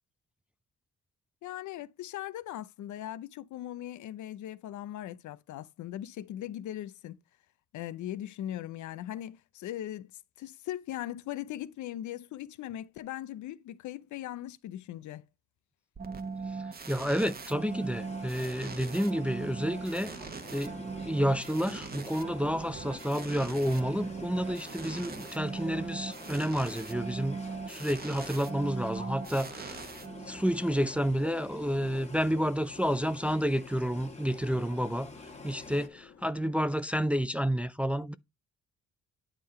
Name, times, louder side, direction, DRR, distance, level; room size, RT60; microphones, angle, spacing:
voice 1, 1.4-7.2 7.7-10.1 10.4-15.3, left 12 dB, 75° left, 0.6 m, -39 dB
sound 1, 16.0-30.6, right 4 dB, 30° right, 1.1 m, -40 dB
voice 2, 16.9-20.1 20.5-27.4 27.7-29.9 30.2-35.1 35.4-38.2, equal, 5° right, 0.4 m, -30 dB
sound 2, 17.5-35.9, left 2 dB, 20° left, 1.6 m, -48 dB
sound 3, 28.8-36.7, left 7 dB, 45° left, 1.5 m, -55 dB
9.7 x 3.7 x 4.2 m
cardioid pair, 90°, 30 cm